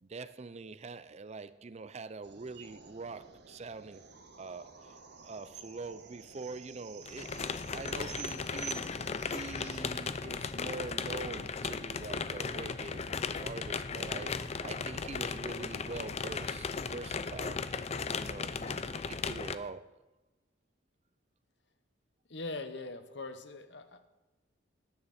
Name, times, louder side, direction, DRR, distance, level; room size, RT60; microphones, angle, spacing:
voice 1, 0.0-4.1 4.4-5.0 5.2-8.9 9.3-17.7 18.1-20.0, right 3 dB, 35° right, 0.5 m, -44 dB
sound 1, 2.2-9.8, right 6 dB, 60° right, 1.3 m, -49 dB
sound 2, 7.0-19.5, left 5 dB, 35° left, 0.5 m, -36 dB
voice 2, 22.3-24.1, left 3 dB, 65° left, 1.2 m, -41 dB
19.0 x 10.0 x 4.3 m
head